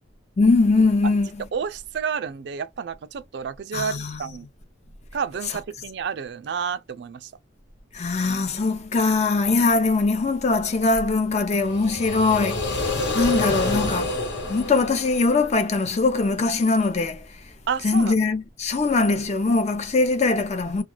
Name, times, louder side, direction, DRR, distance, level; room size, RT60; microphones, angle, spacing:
voice 1, 0.4-1.5 3.7-4.2 7.9-14.2 14.5-17.5 17.8-20.8, left 3 dB, 35° left, 0.5 m, -22 dB
voice 2, 1.5-4.5 5.1-7.3 17.7-18.1, right 6 dB, 60° right, 0.4 m, -30 dB
sound 1, 11.6-15.7, left 2 dB, 65° left, 1.1 m, -27 dB
2.3 x 2.2 x 3.1 m
head